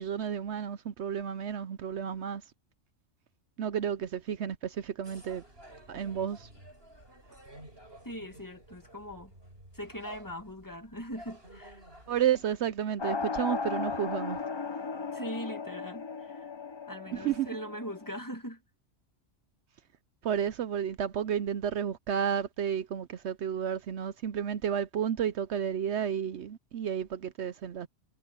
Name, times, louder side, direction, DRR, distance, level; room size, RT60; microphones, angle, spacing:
voice 1, 0.0-2.4 3.6-5.4 5.9-6.5 12.1-14.4 17.1-17.5 20.2-27.9, right 9 dB, 65° right, 0.9 m, -31 dB
sound 1, 5.0-12.5, right 1 dB, 50° right, 8.1 m, -52 dB
voice 2, 8.0-9.3 9.7-11.9 15.1-16.5 16.9-18.6, equal, 15° left, 1.8 m, -41 dB
sound 2, 13.0-18.2, left 5 dB, 30° left, 0.5 m, -36 dB
omnidirectional pair, 1.3 m